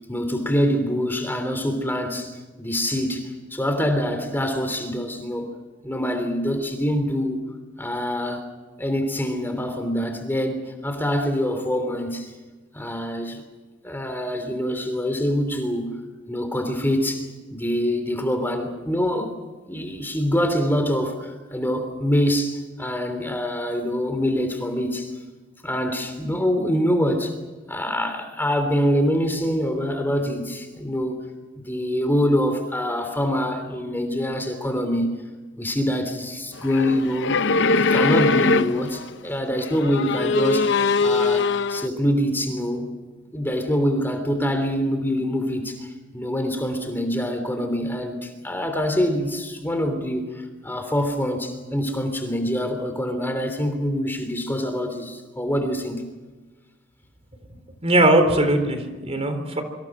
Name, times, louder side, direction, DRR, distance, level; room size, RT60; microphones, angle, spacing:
voice 1, 0.1-5.5 5.8-7.4 7.8-8.4 8.8-12.3 12.7-13.4 13.8-15.9 16.3-19.3 19.7-25.1 25.6-27.3 27.7-31.2 31.6-35.1 35.6-37.4 37.7-42.9 43.3-56.0, equal, 10° left, 6 dB, 3.1 m, -25 dB
sound 1, 36.6-39.1 39.6-41.9, left 3 dB, 65° left, 0.7 m, -21 dB
voice 2, 57.8-59.6, right 1 dB, 35° right, 7 dB, 3.8 m, -19 dB
27.5 x 25.5 x 6.1 m, 1.3 s
head